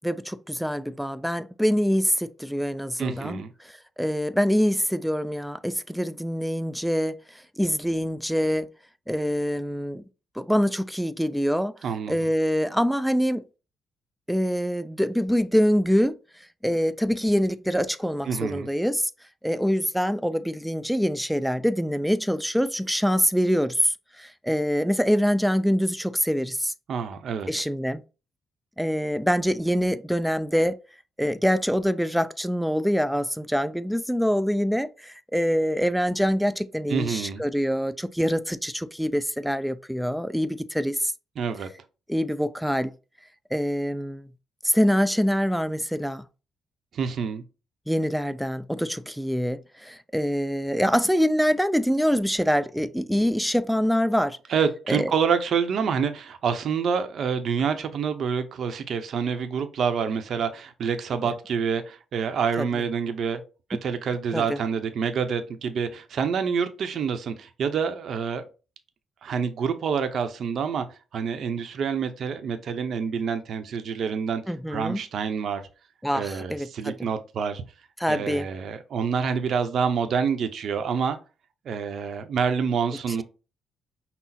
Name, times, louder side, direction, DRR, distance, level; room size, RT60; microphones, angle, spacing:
voice 1, 0.0-8.7 9.1-10.0 10.4-11.7 12.1-13.4 14.3-16.2 16.6-19.1 19.4-26.7 27.5-28.0 28.8-30.8 31.2-41.1 42.1-42.9 43.5-44.3 44.6-46.2 47.9-54.4 54.9-55.1 62.6-62.7 64.3-64.6 74.5-75.0 76.0-77.1 78.0-78.5, equal, ahead, 0.4 m, -25 dB
voice 2, 3.0-3.5 11.8-12.2 18.3-18.7 26.9-27.5 36.9-37.4 41.4-41.7 46.9-47.4 54.5-63.4 63.8-68.4 69.2-70.9 71.1-74.4 74.7-75.6 76.1-77.6 78.1-81.2 81.6-83.2, right 6 dB, 60° right, 0.7 m, -27 dB
5.8 x 2.0 x 4.1 m
cardioid pair, 90°, 0 cm